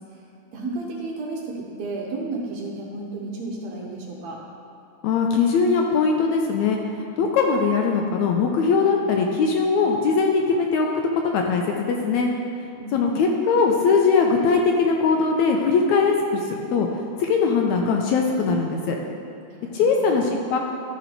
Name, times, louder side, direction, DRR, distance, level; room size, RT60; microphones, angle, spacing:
voice 1, 0.5-4.4 12.7-13.2 19.5-20.3, right 3 dB, 65° right, -2 dB, 2.0 m, -33 dB
voice 2, 5.0-10.9 11.2-12.3 12.9-16.9 17.2-19.0 19.7-20.6, left 5 dB, 80° left, 1 dB, 1.8 m, -21 dB
12.5 x 5.1 x 4.5 m, 2.8 s
omnidirectional pair, 3.6 m